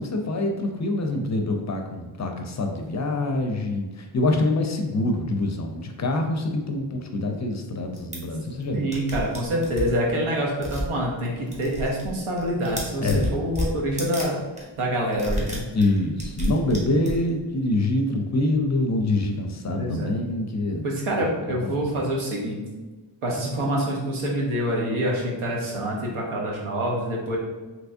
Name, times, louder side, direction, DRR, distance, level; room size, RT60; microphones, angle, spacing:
voice 1, 0.0-9.0 13.0-13.3 15.7-20.8 21.2-21.3 21.8-22.0, left 2 dB, 35° left, 3 dB, 0.4 m, -25 dB
sound 1, 8.0-8.2 8.6-8.7 8.9-9.9 10.6-10.9 11.2-12.1 12.3-14.3 14.6-14.7 15.1-17.4, equal, 15° right, 1.0 m, -30 dB
voice 2, 8.7-14.4 14.8-15.6 19.7-20.1 20.8-22.6 23.2-27.4, equal, 85° right, -2 dB, 1.0 m, -26 dB
3.4 x 3.0 x 2.6 m, 1.3 s
cardioid pair, 80°, 48 cm